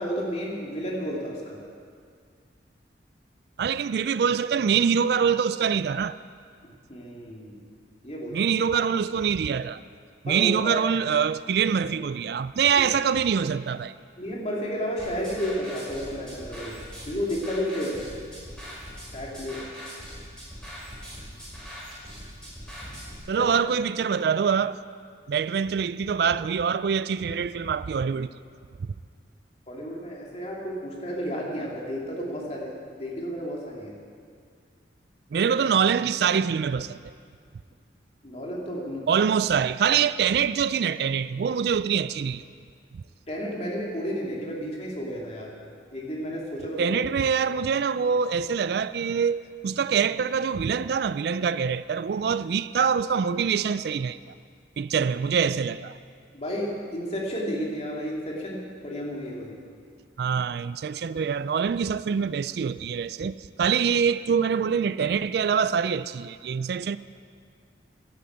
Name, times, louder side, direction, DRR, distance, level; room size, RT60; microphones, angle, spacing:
voice 1, 0.0-1.6 6.9-7.6 8.0-8.4 10.3-10.8 14.2-16.7 17.1-18.1 19.1-19.6 23.4-23.5 29.7-32.7 33.0-33.9 38.2-39.1 43.3-45.5 45.9-46.9 56.3-58.6 58.8-59.5, equal, 35° left, 2.7 m, -32 dB
voice 2, 3.6-6.2 8.3-9.8 10.2-13.9 23.3-24.8 25.3-28.3 35.3-37.0 39.1-42.4 46.8-54.2 54.8-56.0 60.2-67.0, right 6 dB, 60° right, 0.3 m, -24 dB
sound 1, 15.0-23.2, equal, 5° left, 4.3 m, -41 dB
12.0 x 11.0 x 8.1 m
head